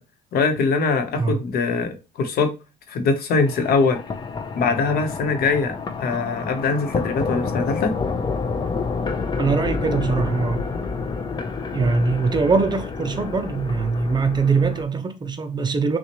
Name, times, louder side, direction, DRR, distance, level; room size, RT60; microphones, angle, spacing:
voice 1, 0.3-2.5 2.9-4.0 4.6-7.9, left 4 dB, 65° left, 1.0 m, -22 dB
sound 1, 3.5-14.8, left 4 dB, 25° left, 0.5 m, -29 dB
voice 2, 9.4-10.6 11.7-16.0, right 4 dB, 25° right, 0.5 m, -22 dB
5.9 x 2.4 x 3.0 m
cardioid pair, 110°, 17 cm